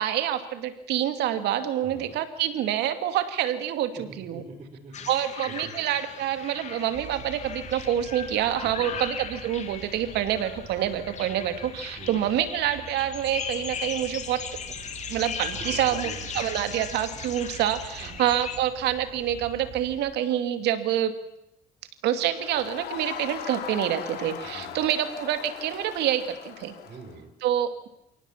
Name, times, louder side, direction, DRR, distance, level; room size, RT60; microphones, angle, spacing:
voice 1, 0.0-4.4 5.1-14.4 15.1-21.1 22.0-26.7 27.4-27.9, right 11 dB, 80° right, 8 dB, 2.6 m, -27 dB
voice 2, 1.8-2.2 4.0-5.3 5.6-5.8 8.6-9.0 12.0-12.3 15.5-16.5 18.0-18.3 24.4-24.9 26.8-27.3, right 3 dB, 40° right, 2 dB, 5.3 m, -44 dB
sound 1, 4.9-18.6, left 6 dB, 45° left, 2.8 m, -38 dB
Insect, 6.9-19.9, right 8 dB, 60° right, 6.8 m, -45 dB
Crowd, 22.4-27.2, left 9 dB, 70° left, 3.9 m, -39 dB
28.0 x 18.5 x 7.4 m, 0.83 s
cardioid pair, 110°, 17 cm